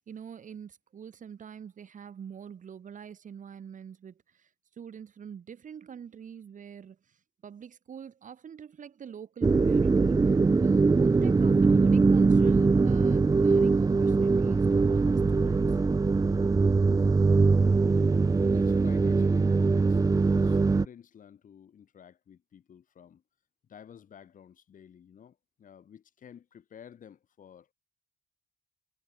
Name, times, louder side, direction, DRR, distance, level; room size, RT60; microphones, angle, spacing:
voice 1, 0.0-15.8, right 7 dB, 60° right, 4.1 m, -45 dB
sound 1, 9.4-20.9, right 4 dB, 25° right, 0.6 m, -22 dB
voice 2, 18.4-23.2 23.7-27.7, left 8 dB, 65° left, 4.3 m, -52 dB
supercardioid pair, 50°, 15 cm